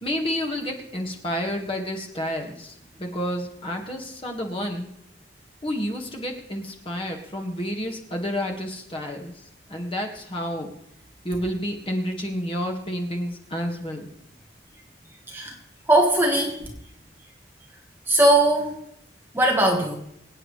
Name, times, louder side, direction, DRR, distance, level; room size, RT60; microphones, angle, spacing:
voice 1, 0.0-2.7 3.0-4.9 5.6-9.3 9.7-10.7 11.2-14.1, equal, 30° left, 2 dB, 1.8 m, -30 dB
voice 2, 15.9-16.6 18.1-18.7 19.3-20.0, right 1 dB, 10° right, 0 dB, 1.5 m, -19 dB
24.5 x 8.8 x 3.3 m, 0.76 s
head